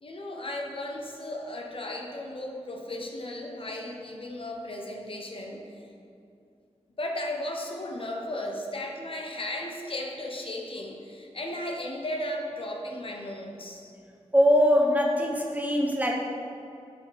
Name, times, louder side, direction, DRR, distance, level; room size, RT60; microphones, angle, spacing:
voice 1, 0.0-5.8 7.0-13.9, left 1 dB, 50° left, 0 dB, 0.9 m, -35 dB
voice 2, 14.3-16.2, equal, 15° right, 0 dB, 0.9 m, -22 dB
6.6 x 4.1 x 5.6 m, 2.6 s
wide cardioid pair, 75°, 12 cm